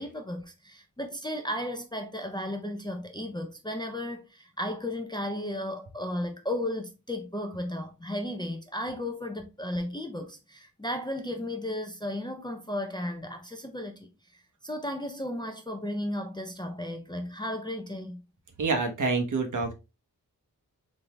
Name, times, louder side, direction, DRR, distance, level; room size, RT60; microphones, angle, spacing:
voice 1, 0.0-14.1 14.6-18.2, left 1 dB, 15° left, 0.5 m, -34 dB
voice 2, 18.6-19.7, right 4 dB, 55° right, 1.1 m, -27 dB
3.9 x 3.4 x 3.0 m
wide cardioid pair, 165°, 35 cm